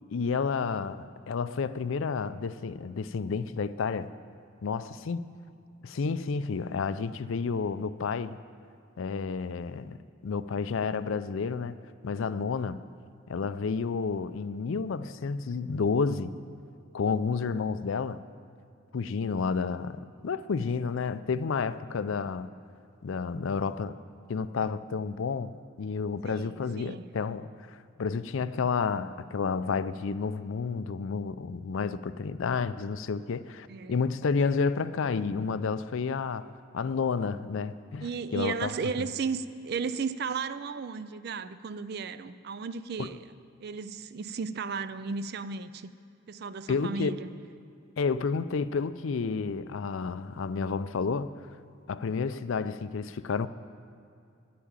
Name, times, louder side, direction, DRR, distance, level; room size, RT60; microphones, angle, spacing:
voice 1, 0.1-4.1 4.6-5.3 5.8-8.4 9.0-10.0 10.2-11.8 12.0-12.8 13.3-16.3 16.9-18.2 18.9-22.5 23.0-23.9 24.3-36.5 36.7-38.7 43.0-43.1 46.7-47.1 48.0-51.3 51.9-53.5, left 5 dB, 65° left, 14 dB, 0.4 m, -30 dB
voice 2, 26.2-27.1 33.7-34.0 38.0-43.3 43.6-45.9 46.3-47.3, right 5 dB, 45° right, 14 dB, 0.4 m, -34 dB
10.5 x 8.5 x 8.8 m, 2.4 s
head